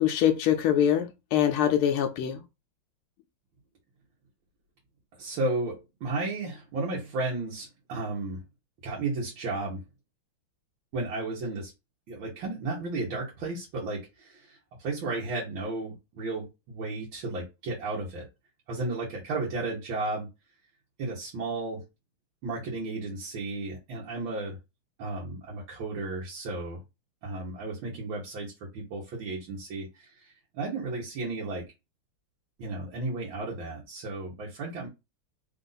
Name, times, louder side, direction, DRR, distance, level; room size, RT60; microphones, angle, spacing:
voice 1, 0.0-2.4, left 10 dB, 85° left, 1.5 m, -24 dB
voice 2, 5.1-8.4 8.8-9.8 10.9-11.7 12.1-18.3 18.7-20.3 21.0-21.9 22.4-24.6 25.0-26.8 27.2-31.7 32.6-34.9, right 2 dB, 70° right, 1.9 m, -33 dB
4.2 x 2.6 x 3.9 m
omnidirectional pair, 2.3 m